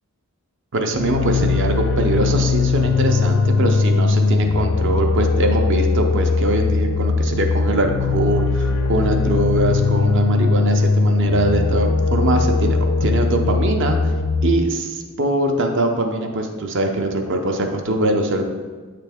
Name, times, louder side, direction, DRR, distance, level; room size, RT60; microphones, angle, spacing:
voice 1, 0.7-14.0 14.4-18.4, right 2 dB, 55° right, 4 dB, 0.6 m, -22 dB
sound 1, 0.9-14.6, left 4 dB, 70° left, 0.5 m, -19 dB
8.2 x 3.4 x 3.5 m, 1.4 s
head